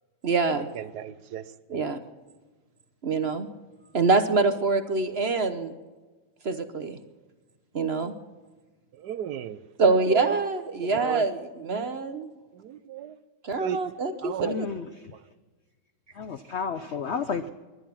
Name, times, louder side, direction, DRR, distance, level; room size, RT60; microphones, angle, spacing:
voice 1, 0.2-0.7 1.7-2.0 3.0-3.5 3.9-5.7 6.4-7.0 7.7-8.1 9.8-12.3 13.4-14.5, right 3 dB, 50° right, 10 dB, 0.8 m, -25 dB
voice 2, 0.7-1.9 8.9-10.4 10.8-11.3 11.6-11.9 12.5-13.2 13.6-13.8 14.2-14.6 15.1-15.2, right 10 dB, 70° right, 14 dB, 1.1 m, -35 dB
voice 3, 14.4-15.1 16.1-17.5, left 5 dB, 70° left, 10 dB, 0.6 m, -32 dB
21.0 x 11.0 x 5.8 m, 1.3 s
omnidirectional pair, 2.0 m